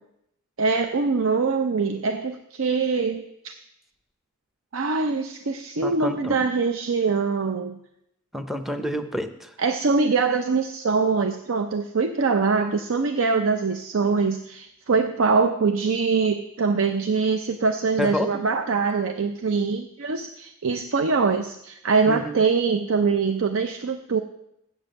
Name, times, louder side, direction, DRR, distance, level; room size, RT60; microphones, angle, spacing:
voice 1, 0.6-3.5 4.7-7.8 9.6-24.2, right 4 dB, 75° right, 7 dB, 0.5 m, -23 dB
voice 2, 5.8-6.4 8.3-9.5 18.0-18.3 22.0-22.4, left 1 dB, ahead, 8 dB, 0.6 m, -29 dB
7.3 x 7.1 x 7.8 m, 0.79 s
head